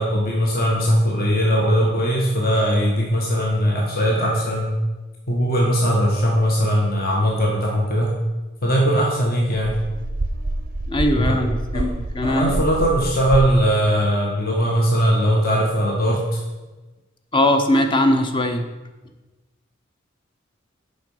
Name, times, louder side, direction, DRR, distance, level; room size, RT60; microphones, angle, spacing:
voice 1, 0.0-4.7 5.3-8.1 8.6-9.7 11.2-11.3 11.7-11.8 12.2-16.4, equal, 45° left, -2 dB, 1.2 m, -20 dB
sound 1, 9.6-13.6, right 2 dB, 40° right, 0.5 m, -27 dB
voice 2, 10.9-12.6 17.3-18.6, left 1 dB, 25° left, 6 dB, 0.7 m, -20 dB
7.7 x 5.4 x 5.4 m, 1.2 s
head